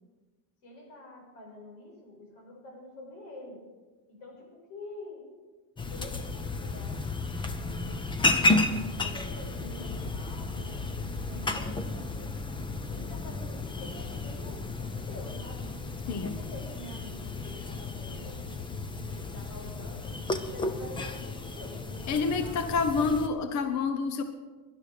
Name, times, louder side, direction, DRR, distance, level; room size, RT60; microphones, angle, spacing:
voice 1, 0.6-3.6 4.1-5.3 5.9-7.0 7.6-8.6 8.9-12.4 12.9-15.7 16.2-18.4 18.9-23.1, left 2 dB, 70° left, 0 dB, 6.2 m, -47 dB
sound 1, 5.8-23.3, left 2 dB, 10° left, 0.6 m, -33 dB
voice 2, 22.1-24.2, left 4 dB, 40° left, 8 dB, 0.9 m, -28 dB
18.0 x 11.5 x 5.1 m, 1.3 s
cardioid pair, 155°, 45 cm